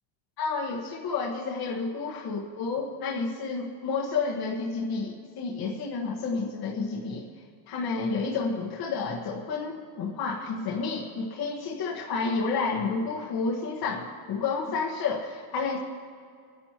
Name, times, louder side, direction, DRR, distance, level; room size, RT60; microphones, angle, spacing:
voice 1, 0.4-7.2 7.7-15.8, left 4 dB, 50° left, -3 dB, 1.5 m, -30 dB
25.5 x 10.5 x 3.0 m, 2.2 s
cardioid pair, 180°, 48 cm